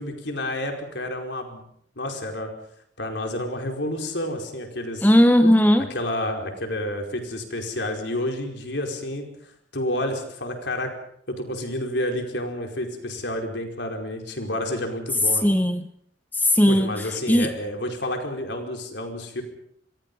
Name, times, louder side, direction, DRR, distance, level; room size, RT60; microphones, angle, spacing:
voice 1, 0.0-1.6 2.0-2.5 3.0-5.1 5.9-9.3 9.7-10.9 11.3-15.5 16.7-19.4, left 1 dB, 70° left, 3 dB, 5.0 m, -29 dB
voice 2, 5.0-5.9 15.4-15.8 16.4-16.9 17.3-17.5, equal, 10° left, 8 dB, 1.0 m, -17 dB
27.5 x 22.0 x 5.6 m, 0.67 s
head